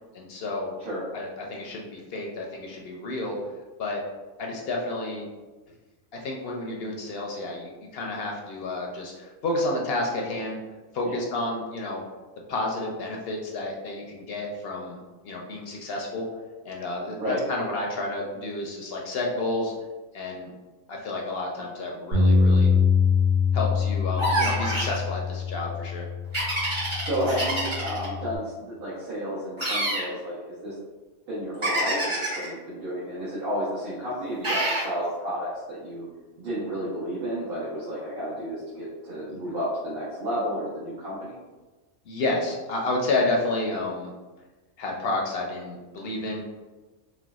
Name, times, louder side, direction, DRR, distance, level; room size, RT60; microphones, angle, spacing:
voice 1, 0.1-0.7 1.1-3.4 3.8-4.0 4.4-5.3 6.2-10.6 10.9-12.0 12.5-15.0 15.2-16.2 16.6-19.7 20.1-20.5 20.9-22.7 23.5-26.1 39.3-39.4 42.1-44.1 44.8-46.4, left 2 dB, 65° left, -1 dB, 0.7 m, -30 dB
Bass guitar, 22.1-28.4, left 5 dB, 85° right, 1.2 m, -24 dB
sound 1, 24.2-25.0 26.3-28.1 29.6-30.1 31.6-32.5 34.4-34.9, right 1 dB, 25° right, 1.0 m, -26 dB
voice 2, 27.0-30.7 31.3-36.1 36.4-41.4, equal, 55° right, -10 dB, 1.1 m, -31 dB
4.3 x 2.2 x 2.3 m, 1.2 s
omnidirectional pair, 1.3 m